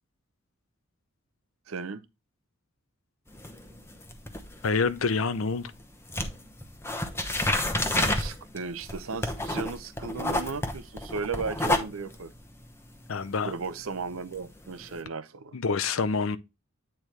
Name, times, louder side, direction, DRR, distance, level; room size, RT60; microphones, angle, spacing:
voice 1, 1.7-2.0 7.9-12.3 13.4-15.6, right 4 dB, 80° right, 0.7 m, -35 dB
sound 1, 3.3-5.8 6.1-15.0, left 1 dB, 10° left, 0.9 m, -31 dB
voice 2, 4.6-5.7 13.1-13.5 15.5-16.4, left 4 dB, 70° left, 0.6 m, -27 dB
8.6 x 4.5 x 3.2 m
head